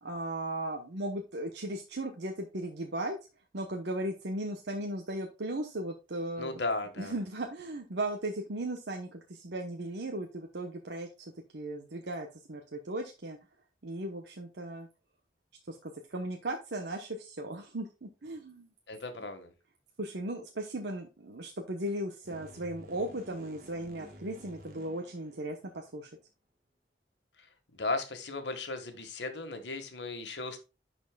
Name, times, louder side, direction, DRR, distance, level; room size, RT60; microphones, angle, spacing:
voice 1, 0.0-3.1 3.5-6.6 7.0-13.4 13.8-14.9 15.7-18.7 20.0-26.1, right 1 dB, 80° right, 3 dB, 1.0 m, -37 dB
voice 2, 6.4-7.2 18.9-19.5 27.4-27.5 27.7-30.6, left 3 dB, 90° left, 7 dB, 1.6 m, -36 dB
sound 1, 22.2-26.0, equal, 55° right, 1.6 m, -52 dB
11.0 x 4.4 x 2.3 m, 0.30 s
head